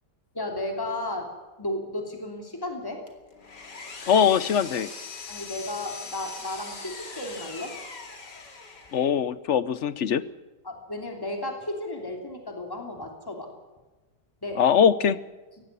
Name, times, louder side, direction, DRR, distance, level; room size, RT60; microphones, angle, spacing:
voice 1, 0.3-1.3 1.6-3.0 5.3-7.8 10.6-13.5 14.4-14.6, left 1 dB, 10° left, 2 dB, 3.1 m, -34 dB
Power tool, 3.1-9.1, left 4 dB, 80° left, 3.1 m, -41 dB
voice 2, 4.1-4.9 8.9-10.2 14.5-15.2, left 8 dB, 55° left, 16 dB, 0.9 m, -21 dB
18.5 x 15.0 x 9.8 m, 1.2 s
omnidirectional pair, 1.8 m